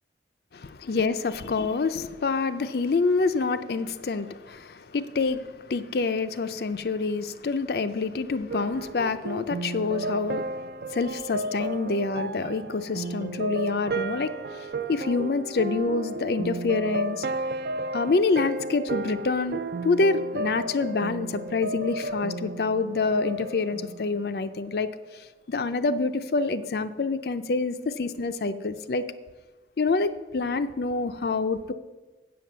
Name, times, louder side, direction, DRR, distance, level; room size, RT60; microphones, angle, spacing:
voice 1, 0.5-10.4 10.9-17.3 17.9-24.9 25.1-25.2 25.5-29.0 29.8-31.7, left 3 dB, 60° left, 11 dB, 0.5 m, -27 dB
sound 1, 8.5-24.6, right 2 dB, 60° right, 0.4 m, -33 dB
7.8 x 7.7 x 6.7 m, 1.2 s
head